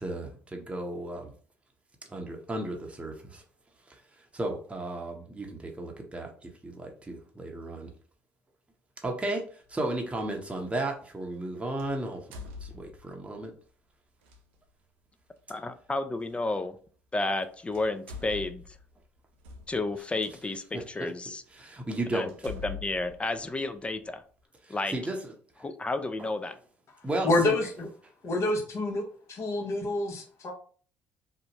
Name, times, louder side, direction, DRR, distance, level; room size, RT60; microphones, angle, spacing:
voice 1, 0.5-1.2 2.1-3.1 4.4-5.4 5.8-6.3 6.6-7.9 9.0-9.4 9.7-12.2 12.8-13.5 21.0-21.1 21.9-22.3 24.9-25.2 26.2-26.3 27.0-27.5, right 2 dB, 20° right, 2 dB, 0.7 m, -33 dB
sound 1, 9.7-9.9 11.8-13.3 14.2-14.4 16.3-16.4 17.3-17.4 17.7-20.3 21.0-21.1 21.6-21.7 22.3-24.1, left 4 dB, 85° right, 0.4 m, -44 dB
voice 2, 15.5-16.8 17.1-18.6 19.7-21.4 22.1-24.2 24.7-24.9 25.6-26.6, left 2 dB, 20° left, 11 dB, 0.4 m, -31 dB
voice 3, 27.2-27.9 28.2-29.0 29.3-30.5, left 2 dB, 50° left, 1 dB, 0.8 m, -27 dB
2.6 x 2.1 x 2.9 m, 0.44 s
hypercardioid pair, 60°, 6 cm